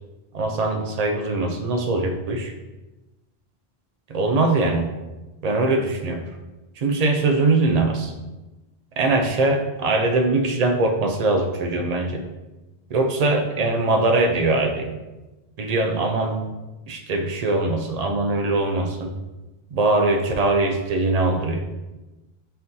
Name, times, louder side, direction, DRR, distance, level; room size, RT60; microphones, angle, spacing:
voice 1, 0.3-2.5 4.1-4.9 5.4-6.2 6.8-8.1 9.0-12.2 12.9-14.9 15.6-16.5 16.9-19.1 19.7-21.6, right 2 dB, 55° right, 4 dB, 0.4 m, -22 dB
4.3 x 2.6 x 3.7 m, 1.1 s
omnidirectional pair, 1.1 m